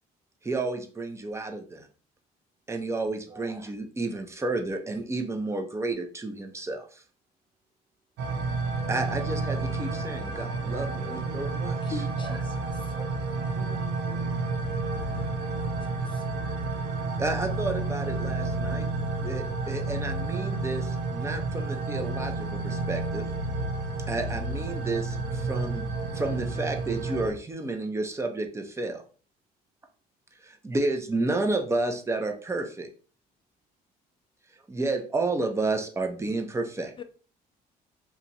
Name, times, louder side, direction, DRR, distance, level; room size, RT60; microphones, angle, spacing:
voice 1, 0.4-1.9 2.7-7.0 8.9-11.8 12.2-12.4 17.2-18.9 19.2-23.3 24.1-25.8 26.1-29.0 30.4-32.9 34.7-37.0, right 2 dB, 15° right, 0.6 m, -31 dB
sound 1, 8.2-27.3, right 3 dB, 90° right, 0.8 m, -30 dB
voice 2, 10.3-11.4 13.5-14.8, right 2 dB, 50° right, 1.2 m, -48 dB
voice 3, 11.8-12.9 16.0-16.2 37.0-37.1, left 4 dB, 30° left, 0.4 m, -41 dB
2.9 x 2.4 x 4.1 m
cardioid pair, 110°, 17 cm